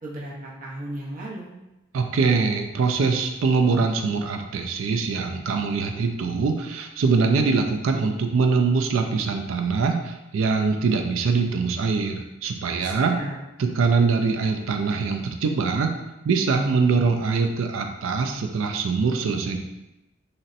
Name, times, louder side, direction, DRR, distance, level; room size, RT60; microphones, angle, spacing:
voice 1, 0.0-1.5 12.8-13.4, right 1 dB, 40° right, -5 dB, 0.7 m, -35 dB
voice 2, 1.9-13.2 13.6-15.9 16.2-19.6, right 4 dB, 75° right, 5 dB, 0.4 m, -23 dB
4.0 x 2.1 x 2.5 m, 0.96 s
head